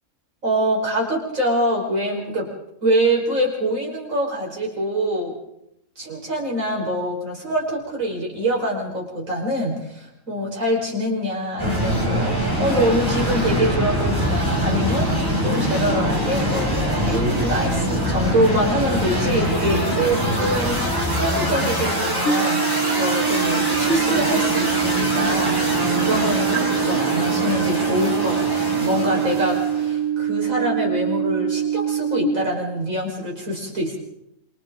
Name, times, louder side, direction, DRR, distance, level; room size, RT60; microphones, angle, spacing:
voice 1, 0.4-2.5 2.8-5.4 6.0-15.1 15.4-34.0, equal, 65° right, -2 dB, 5.7 m, -24 dB
sound 1, 11.6-29.9, equal, 15° right, 6.1 m, -23 dB
sound 2, 22.3-32.3, right 9 dB, 80° left, 5.1 m, -24 dB
28.0 x 25.5 x 4.0 m, 0.80 s
omnidirectional pair, 1.5 m